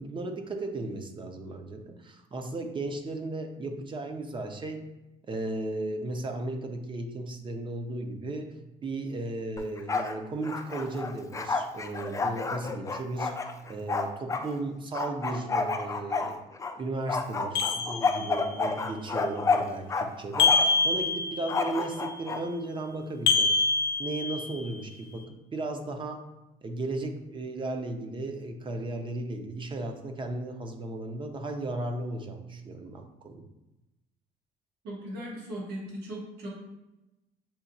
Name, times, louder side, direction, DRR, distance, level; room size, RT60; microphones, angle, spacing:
voice 1, 0.0-4.9 5.3-16.4 16.8-23.5 24.0-26.3 26.6-33.5, right 2 dB, 30° right, 5 dB, 0.6 m, -35 dB
Bark, 9.6-10.2 10.4-14.5 14.9-16.7 17.1-20.1 20.3-20.8 21.5-22.4, left 4 dB, 20° left, 0.4 m, -29 dB
sound 1, 17.5-18.6 20.4-21.7 23.3-24.8, left 4 dB, 85° left, 0.5 m, -25 dB
voice 2, 34.8-36.5, equal, 75° right, -4 dB, 1.4 m, -38 dB
7.0 x 2.8 x 2.7 m, 0.99 s
cardioid pair, 110°, 17 cm